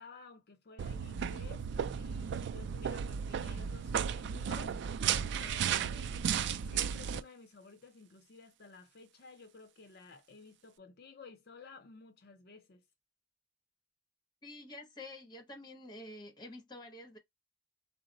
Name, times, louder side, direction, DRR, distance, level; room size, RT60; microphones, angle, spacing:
voice 1, 0.0-1.7 2.0-4.8 5.0-6.1 6.6-12.8, left 4 dB, 60° left, 0.6 m, -54 dB
sound 1, 0.8-7.2, right 8 dB, 65° right, 0.3 m, -34 dB
voice 2, 14.4-17.2, left 1 dB, 25° left, 1.0 m, -48 dB
3.8 x 2.0 x 3.8 m
head